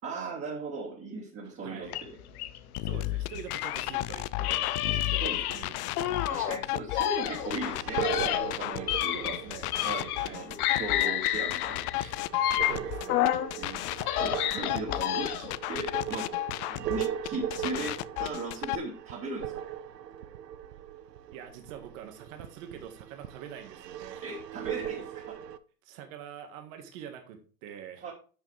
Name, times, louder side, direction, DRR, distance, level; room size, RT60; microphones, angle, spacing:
voice 1, 0.0-2.1 5.2-5.4 6.3-9.4 9.8-12.1 13.6-16.3 16.8-19.5 24.2-25.4 28.0-28.1, right 3 dB, 30° right, -3 dB, 2.8 m, -38 dB
voice 2, 1.4-1.9 2.8-6.3 9.1-9.7 10.2-10.5 12.6-13.3 21.3-24.2 25.8-28.0, right 9 dB, 55° right, 5 dB, 1.9 m, -45 dB
sound 1, 1.9-4.0 4.4-6.6 6.9-10.3 10.6-13.5 13.9-15.6, left 12 dB, 65° left, 1.2 m, -30 dB
sound 2, 2.8-18.8, left 18 dB, 50° left, 0.5 m, -34 dB
sound 3, 7.2-25.6, right 10 dB, 85° right, 0.8 m, -39 dB
10.5 x 6.3 x 3.4 m, 0.38 s
hypercardioid pair, 100°, 47 cm